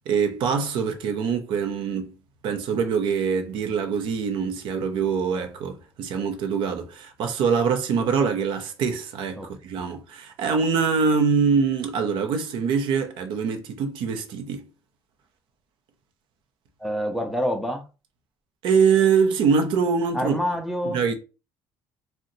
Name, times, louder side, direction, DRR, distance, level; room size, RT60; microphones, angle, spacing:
voice 1, 0.1-2.1 2.4-14.6 18.6-20.4 20.8-21.1, right 6 dB, 65° right, 0.6 m, -24 dB
voice 2, 16.8-17.8 20.1-21.0, equal, ahead, 0.5 m, -27 dB
2.7 x 2.1 x 3.8 m
cardioid pair, 175°, 9 cm